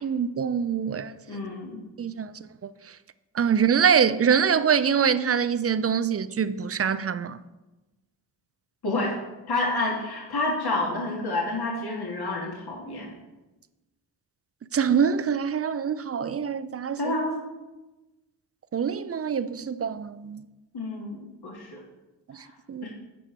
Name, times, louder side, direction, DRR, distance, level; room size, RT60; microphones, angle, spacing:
voice 1, 0.0-1.1 2.0-2.3 2.6-3.0 3.3-7.4 14.7-17.1 18.7-20.5 22.3-22.9, right 7 dB, 30° right, 0.5 m, -25 dB
voice 2, 1.3-1.8 8.8-9.2 9.5-13.1 17.0-17.4 20.7-21.8 22.3-22.5 22.8-22.9, left 2 dB, 50° left, 1.7 m, -29 dB
7.9 x 4.9 x 4.6 m
supercardioid pair, 40°, 48 cm